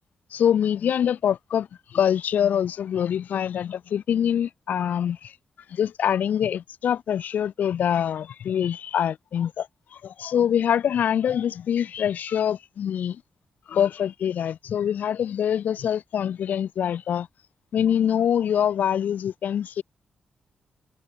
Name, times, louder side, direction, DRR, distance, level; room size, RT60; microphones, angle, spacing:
voice 1, 0.3-5.3 5.7-13.2 13.7-17.3 17.7-19.8, left 9 dB, 80° left, 7.3 m, -24 dB
wide cardioid pair, 120°, 3 cm